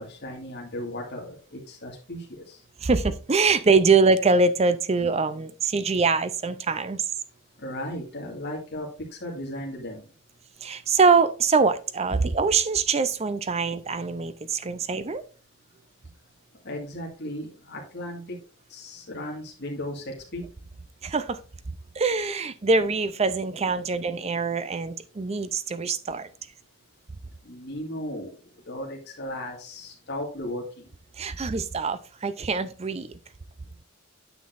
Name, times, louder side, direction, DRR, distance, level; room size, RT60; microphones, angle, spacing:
voice 1, 0.0-2.6 7.6-10.1 16.6-18.4 18.7-20.5 27.4-28.4 28.7-30.9, left 1 dB, 55° left, 2.0 m, -36 dB
voice 2, 2.8-7.0 10.6-15.2 21.0-21.4 22.0-26.3 31.2-33.1, right 4 dB, 30° right, 0.5 m, -23 dB
9.4 x 6.1 x 2.6 m
head